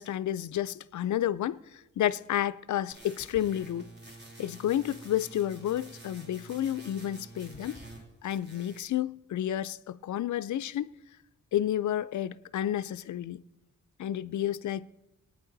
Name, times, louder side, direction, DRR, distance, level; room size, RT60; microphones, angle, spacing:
voice 1, 0.0-1.6 2.0-3.9 4.4-7.8 8.2-10.9 11.5-13.4 14.0-14.9, left 11 dB, 65° left, 0.5 m, -31 dB
sound 1, 2.9-8.0 8.3-8.9, right 1 dB, 35° right, 2.7 m, -49 dB
21.5 x 9.3 x 4.0 m
cardioid pair, 105°, 31 cm